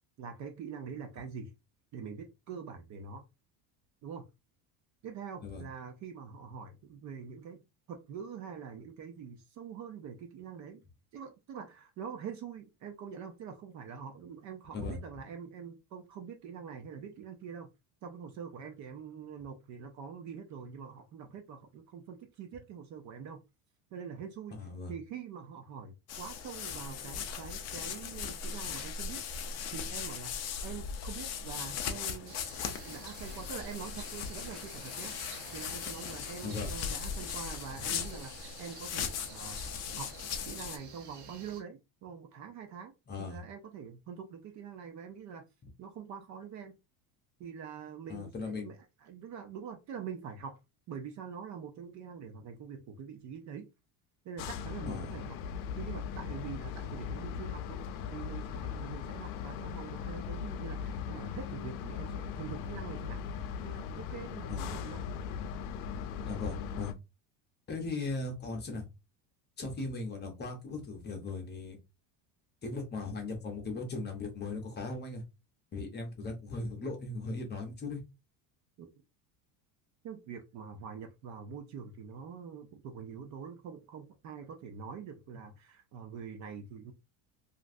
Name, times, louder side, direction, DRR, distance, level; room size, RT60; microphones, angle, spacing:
voice 1, 0.2-1.5 1.9-3.2 4.0-4.2 5.0-7.6 7.9-10.8 11.1-17.7 18.0-23.4 23.9-24.6 24.9-29.2 29.7-32.3 32.8-35.2 35.5-39.6 40.0-40.1 40.4-45.5 45.8-46.8 47.4-50.6 50.9-53.7 54.2-55.4 55.8-63.2 63.6-65.0 78.8-78.9 80.0-86.9, right 7 dB, 45° right, 0.5 m, -44 dB
voice 2, 24.5-24.9 36.4-36.7 43.1-43.4 48.1-48.7 54.9-55.1 64.5-64.8 66.2-66.9 67.7-68.8 69.6-71.8 72.6-75.2 75.7-78.0, left 3 dB, 25° left, 0.8 m, -38 dB
sound 1, 26.1-40.8, left 7 dB, 40° left, 0.4 m, -39 dB
sound 2, 32.3-41.6, right 6 dB, 70° right, 0.9 m, -50 dB
sound 3, 54.4-66.9, left 7 dB, 90° left, 0.6 m, -39 dB
3.0 x 2.6 x 2.5 m
cardioid pair, 150°, 43 cm